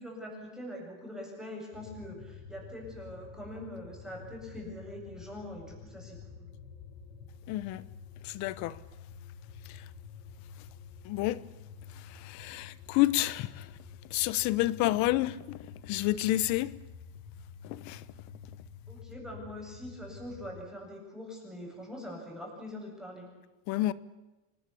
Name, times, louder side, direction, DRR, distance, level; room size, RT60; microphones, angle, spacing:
voice 1, 0.0-6.5 18.9-23.3, left 1 dB, ahead, 7.9 m, -43 dB
sound 1, 1.7-20.6, left 6 dB, 80° left, 5.2 m, -49 dB
voice 2, 7.5-7.9 8.2-8.8 9.6-9.9 11.0-11.4 11.9-13.8 14.1-16.7 17.6-18.1 23.7-23.9, left 16 dB, 60° left, 1.1 m, -30 dB
26.0 x 20.5 x 8.6 m
cardioid pair, 150°, 33 cm